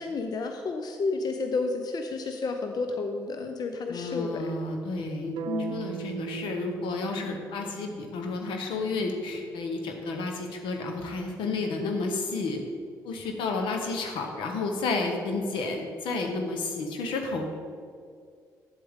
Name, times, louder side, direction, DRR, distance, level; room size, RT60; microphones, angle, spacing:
voice 1, 0.0-4.5 5.4-5.8, left 3 dB, 50° left, 5 dB, 0.7 m, -31 dB
voice 2, 3.9-5.4 5.7-12.6 13.0-17.5, left 3 dB, 75° left, 3 dB, 1.1 m, -31 dB
sound 1, 5.4-9.4, right 9 dB, 70° right, 0.6 m, -40 dB
9.3 x 7.7 x 3.7 m, 2.2 s
hypercardioid pair, 45°, 8 cm